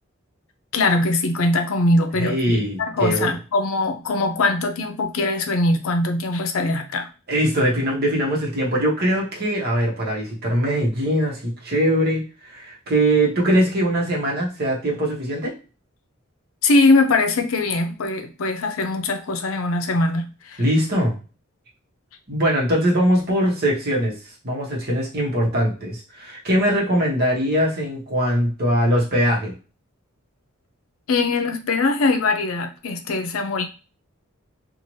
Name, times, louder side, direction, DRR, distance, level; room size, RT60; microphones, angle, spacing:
voice 1, 0.7-7.1 16.6-20.6 31.1-33.7, left 2 dB, 80° left, 0.5 m, -21 dB
voice 2, 2.2-3.3 7.3-15.5 20.6-21.1 22.3-24.1 24.4-29.5, equal, 50° right, 1.1 m, -21 dB
2.7 x 2.4 x 3.1 m
head